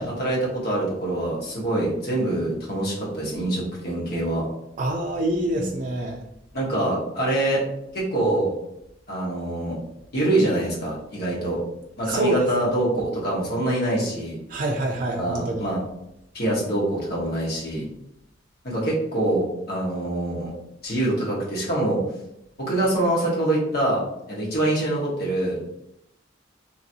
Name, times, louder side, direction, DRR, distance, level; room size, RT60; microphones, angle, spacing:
voice 1, 0.0-4.4 5.5-5.7 6.5-7.6 7.9-8.5 9.1-9.8 10.1-11.6 12.0-14.4 15.2-15.8 16.3-17.9 18.6-20.5 20.8-22.0 22.6-24.0 24.3-25.7, right 1 dB, 55° left, -5 dB, 1.1 m, -25 dB
voice 2, 4.8-6.2 12.0-12.5 14.5-15.7, right 2 dB, 45° right, -1 dB, 0.4 m, -26 dB
3.0 x 2.6 x 2.7 m, 0.83 s
head